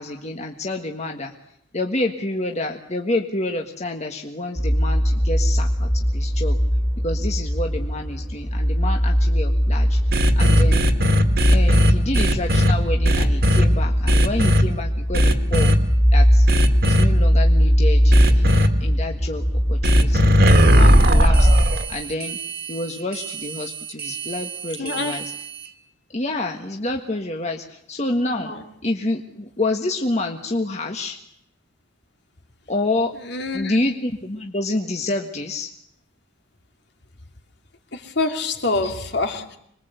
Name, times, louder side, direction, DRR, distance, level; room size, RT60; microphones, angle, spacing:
voice 1, 0.0-1.3 1.7-6.6 7.0-10.0 10.4-10.9 11.5-15.7 16.1-16.5 16.8-18.5 18.8-19.4 19.7-21.5 21.9-22.4 22.7-25.3 26.1-28.5 28.8-31.2 32.7-33.1 33.5-35.7 38.8-38.9, left 2 dB, 35° left, 1.7 m, -28 dB
sound 1, 4.6-21.6, equal, 5° left, 2.6 m, -20 dB
sound 2, 10.1-12.7 13.0-13.6 14.1-14.6 15.1-15.8 16.5-17.0 18.1-18.7 19.8-25.7, equal, 55° right, 2.3 m, -18 dB
voice 2, 24.8-25.2 28.3-28.6 33.2-33.7 37.9-39.6, left 3 dB, 60° left, 2.7 m, -26 dB
26.5 x 22.0 x 8.2 m
head